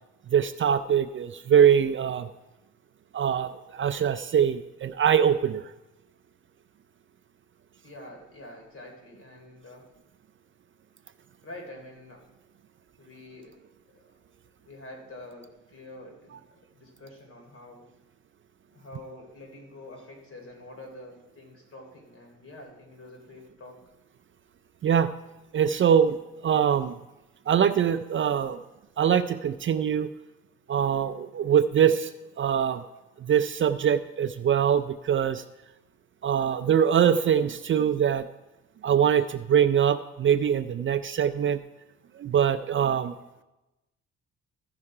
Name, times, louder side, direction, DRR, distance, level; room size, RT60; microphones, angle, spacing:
voice 1, 0.3-2.3 3.1-5.7 24.8-25.1 25.5-26.2 26.4-27.0 27.5-28.6 29.0-30.1 30.7-32.1 32.4-32.8 33.2-35.4 36.2-38.3 38.8-41.6 42.2-43.1, right 8 dB, 40° right, 11 dB, 0.4 m, -23 dB
voice 2, 7.8-9.9 11.4-12.3 13.0-13.6 13.9-14.0 14.6-16.4 16.7-17.9 18.7-23.8, left 1 dB, 45° left, 1 dB, 3.3 m, -46 dB
15.0 x 5.6 x 4.9 m, 1.0 s
cardioid pair, 90°, 30 cm